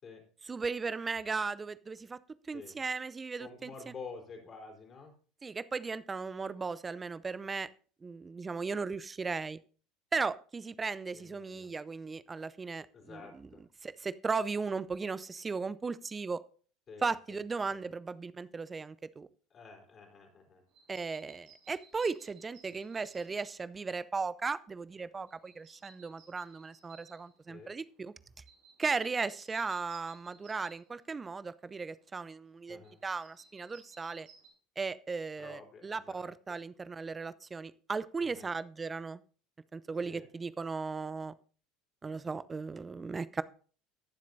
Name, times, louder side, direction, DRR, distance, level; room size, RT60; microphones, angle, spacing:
voice 1, 0.5-2.2 2.4-3.9 5.4-7.7 8.0-9.6 10.1-13.2 13.8-16.4 17.0-19.3 20.9-28.1 28.8-34.3 34.8-39.2 39.7-41.3 42.0-43.4, right 4 dB, 20° right, 16 dB, 0.6 m, -36 dB
voice 2, 3.4-5.1 11.1-11.7 12.9-13.6 16.9-17.4 17.7-17.8 19.5-20.6 27.5-27.7 32.7-33.0 35.4-36.3 38.2-38.5 40.0-40.3, left 4 dB, 40° left, 1 dB, 3.8 m, -49 dB
sound 1, 20.7-34.5, right 6 dB, 65° right, 5.4 m, -61 dB
20.0 x 7.4 x 2.7 m, 0.41 s
hypercardioid pair, 70°, 0 cm